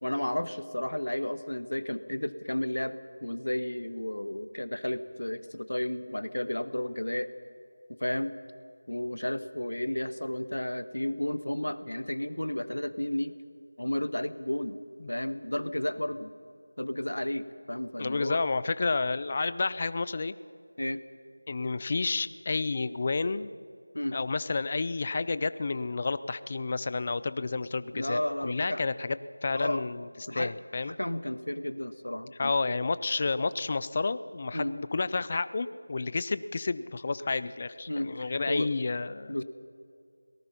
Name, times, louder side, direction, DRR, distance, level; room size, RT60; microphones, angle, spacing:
voice 1, 0.0-7.3 7.9-8.3 8.9-13.3 13.8-14.8 15.1-16.3 16.8-18.4 20.8-21.0 23.9-24.2 27.9-28.8 29.5-29.8 30.3-30.5 30.8-32.7 34.5-34.8 37.9-38.7 39.3-39.4, left 1 dB, 90° left, 13 dB, 1.3 m, -32 dB
voice 2, 18.0-20.3 21.5-23.5 24.1-30.1 30.3-30.9 32.4-39.4, left 3 dB, 25° left, 15 dB, 0.4 m, -30 dB
24.5 x 18.5 x 5.7 m, 2.4 s
figure-of-eight pair, 175°, 0 cm